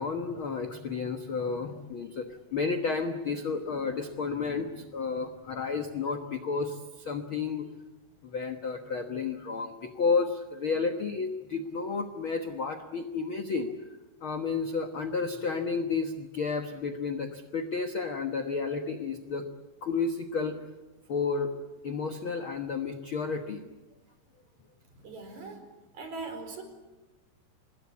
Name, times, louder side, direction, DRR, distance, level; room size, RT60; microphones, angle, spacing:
voice 1, 0.0-7.7 8.2-13.7 14.2-19.5 19.8-20.7 21.1-21.5 21.8-23.7, left 4 dB, 80° left, 7 dB, 1.1 m, -31 dB
voice 2, 25.0-25.6 25.9-26.6, right 3 dB, 45° right, 6 dB, 5.5 m, -40 dB
26.0 x 21.5 x 8.6 m, 1.1 s
omnidirectional pair, 4.5 m